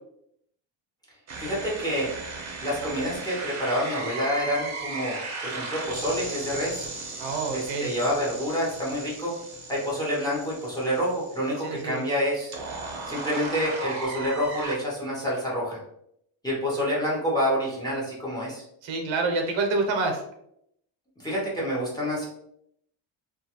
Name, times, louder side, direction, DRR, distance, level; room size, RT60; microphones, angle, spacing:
sound 1, 1.3-14.8, right 3 dB, 35° right, 0.6 m, -36 dB
voice 1, 1.4-2.1 2.6-6.9 7.5-9.3 9.7-12.5 13.1-15.8 16.4-18.6 21.2-22.3, equal, 10° left, -6 dB, 0.6 m, -28 dB
voice 2, 7.2-7.9 11.6-12.0 18.8-20.2, right 3 dB, 75° right, 3 dB, 0.7 m, -27 dB
2.4 x 2.3 x 2.8 m, 0.75 s
cardioid pair, 160°, 46 cm